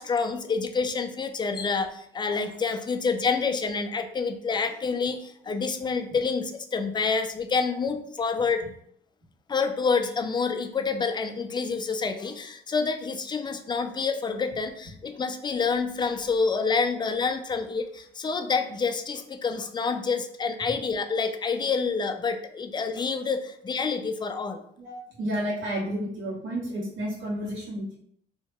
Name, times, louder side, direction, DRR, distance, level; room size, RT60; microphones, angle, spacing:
voice 1, 0.0-8.6 9.5-24.6, left 5 dB, 25° left, 7 dB, 0.3 m, -28 dB
voice 2, 24.8-28.0, equal, 70° right, -6 dB, 1.4 m, -31 dB
2.8 x 2.1 x 3.2 m, 0.68 s
cardioid pair, 90°, 20 cm